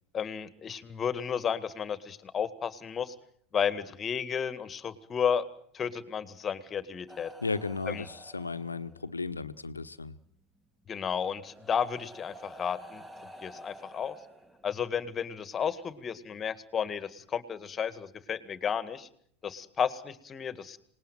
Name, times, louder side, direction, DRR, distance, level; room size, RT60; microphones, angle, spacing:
voice 1, 0.1-3.2 3.5-5.5 5.7-7.3 7.9-8.1 10.9-13.0 13.4-14.2 14.6-19.1 19.4-20.8, left 7 dB, 25° left, 15 dB, 2.1 m, -32 dB
sound 1, 7.1-9.2 10.6-10.7 11.4-15.0 16.1-16.2, right 1 dB, 10° right, 2.1 m, -50 dB
voice 2, 7.4-10.1, left 4 dB, 85° left, 13 dB, 1.1 m, -35 dB
27.0 x 20.0 x 9.3 m, 0.66 s
figure-of-eight pair, 85°, 0 cm